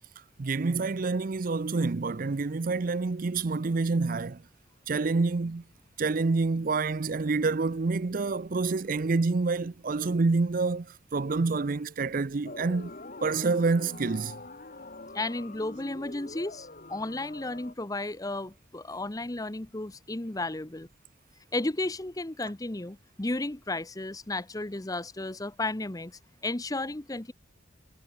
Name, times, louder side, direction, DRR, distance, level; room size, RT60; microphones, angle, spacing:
voice 1, 0.4-4.4 4.9-5.6 6.0-12.9 13.2-14.4, right 3 dB, 45° right, 0.5 m, -27 dB
sound 1, 12.5-17.7, left 2 dB, 40° left, 2.1 m, -45 dB
voice 2, 15.1-20.9 21.5-27.3, left 2 dB, 20° left, 0.8 m, -33 dB
head